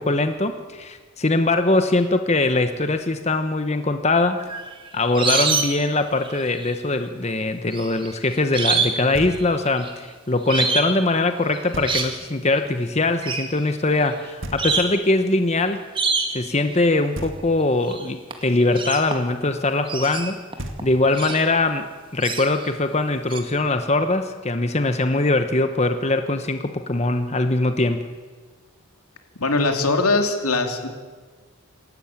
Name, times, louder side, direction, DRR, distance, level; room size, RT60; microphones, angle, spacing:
voice 1, 0.0-4.4 4.9-15.8 16.3-20.4 20.8-28.1, left 2 dB, 30° left, 8 dB, 1.0 m, -22 dB
sound 1, 4.4-5.9 6.2-6.7 7.7-9.0 9.3-9.9 10.5-11.0 11.5-12.1 13.2-13.5 14.1-14.2 14.6-15.0 16.0-16.5 17.9-18.1 18.3-19.4 19.9-21.5 22.2-22.7 23.3-23.4, right 4 dB, 20° right, 2.1 m, -25 dB
Knock, 9.1-9.8 11.7-12.4 14.4-15.2 17.1-17.9 20.2-20.3 20.6-21.4, right 1 dB, 60° right, 2.1 m, -36 dB
voice 2, 29.4-30.9, left 3 dB, 85° left, 5 dB, 3.0 m, -21 dB
27.5 x 13.5 x 8.9 m, 1.5 s
head